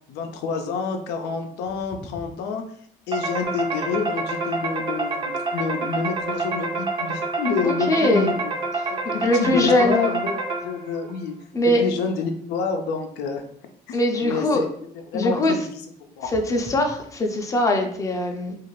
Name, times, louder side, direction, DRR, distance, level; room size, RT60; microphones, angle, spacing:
voice 1, 0.1-2.6 3.1-8.5 8.9-11.4 11.8-13.4 13.9-14.0 14.2-14.7 15.1-15.8 16.2-16.3, left 5 dB, 90° left, 5 dB, 0.4 m, -28 dB
sound 1, 3.1-11.0, right 3 dB, 30° right, 0.6 m, -28 dB
voice 2, 7.6-8.3 9.1-10.1 11.5-11.8 13.9-14.6 15.1-15.5 16.3-18.6, left 1 dB, 20° left, 3 dB, 0.5 m, -21 dB
2.5 x 2.4 x 3.1 m, 0.65 s
cardioid pair, 110°, 17 cm